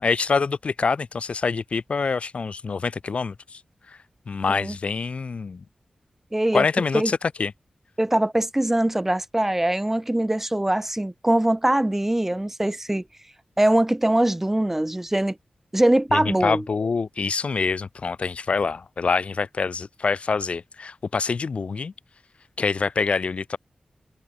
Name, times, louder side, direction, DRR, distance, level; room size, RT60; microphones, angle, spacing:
voice 1, 0.0-3.6 4.3-5.6 6.5-7.5 16.1-21.9 22.6-23.6, left 4 dB, 65° left, 2.5 m, -25 dB
voice 2, 6.3-6.6 6.9-7.1 8.0-13.0 13.6-15.3 15.7-16.6, right 1 dB, 15° right, 1.3 m, -22 dB
wide cardioid pair, 85°, 2 cm